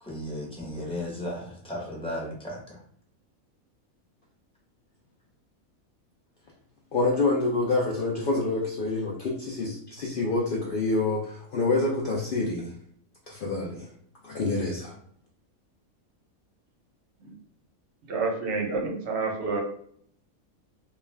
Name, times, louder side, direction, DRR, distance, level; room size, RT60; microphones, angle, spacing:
voice 1, 0.0-2.8, left 1 dB, 5° left, -5 dB, 0.6 m, -35 dB
voice 2, 6.9-12.7 13.3-13.9 14.2-14.9, left 3 dB, 85° left, -3 dB, 0.4 m, -27 dB
voice 3, 18.1-19.6, right 4 dB, 60° right, 0 dB, 0.8 m, -28 dB
2.3 x 2.3 x 3.2 m, 0.63 s
omnidirectional pair, 1.5 m